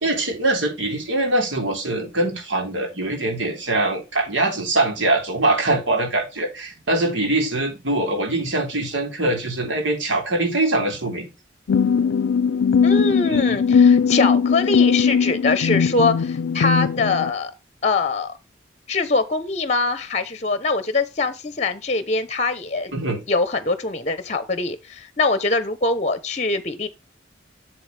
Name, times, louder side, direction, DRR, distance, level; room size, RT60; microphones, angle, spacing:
voice 1, 0.0-11.2 13.2-13.5 22.9-23.2, right 2 dB, 80° right, 3.5 m, -23 dB
sound 1, 11.7-17.3, left 6 dB, 90° left, 0.4 m, -19 dB
voice 2, 12.8-17.5 17.8-18.3 18.9-22.9 23.3-26.9, left 3 dB, 35° left, 0.8 m, -23 dB
7.7 x 7.4 x 3.3 m
head